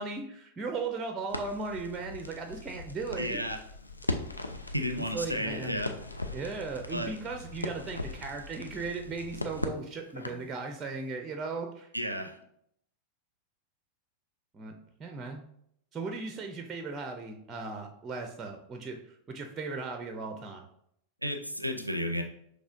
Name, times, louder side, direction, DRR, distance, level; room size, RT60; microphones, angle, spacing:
voice 1, 0.0-3.4 5.0-5.7 6.3-11.9 14.5-15.4 15.9-20.7, right 4 dB, 20° right, 4 dB, 0.5 m, -37 dB
Crackle, 1.3-10.5, left 2 dB, 80° left, 0.4 m, -39 dB
voice 2, 3.2-3.6 4.7-5.9 6.9-7.1 11.9-12.4 21.2-22.2, equal, 90° right, 6 dB, 0.4 m, -32 dB
6.0 x 3.2 x 2.6 m, 0.71 s
figure-of-eight pair, 90°, 0 cm